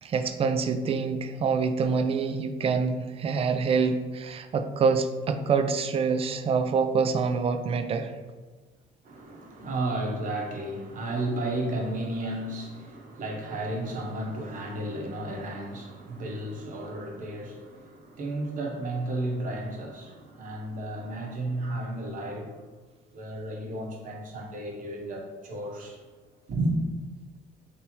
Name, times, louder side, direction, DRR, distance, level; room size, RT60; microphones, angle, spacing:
voice 1, 0.0-8.1, right 5 dB, 35° right, 7 dB, 0.4 m, -26 dB
voice 2, 9.0-22.6 23.1-26.0 26.5-26.8, right 1 dB, 50° right, 0 dB, 1.0 m, -33 dB
3.4 x 2.9 x 4.3 m, 1.3 s
cardioid pair, 110°, 17 cm